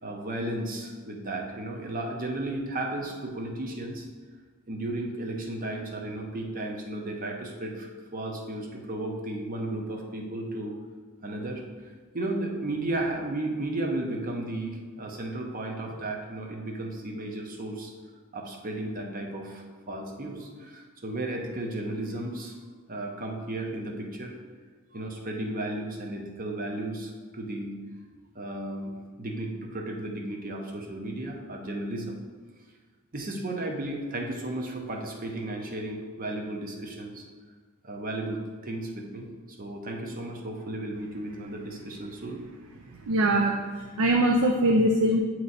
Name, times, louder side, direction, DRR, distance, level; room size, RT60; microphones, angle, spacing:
voice 1, 0.0-4.1 4.7-10.7 11.2-17.9 18.3-22.6 22.9-24.3 24.9-27.7 28.3-28.9 29.2-32.1 33.1-37.2 37.8-39.3 39.6-42.4, right 1 dB, 40° right, 1 dB, 0.8 m, -34 dB
voice 2, 43.1-45.2, right 1 dB, 75° right, 2 dB, 0.5 m, -22 dB
8.4 x 3.1 x 4.0 m, 1.5 s
head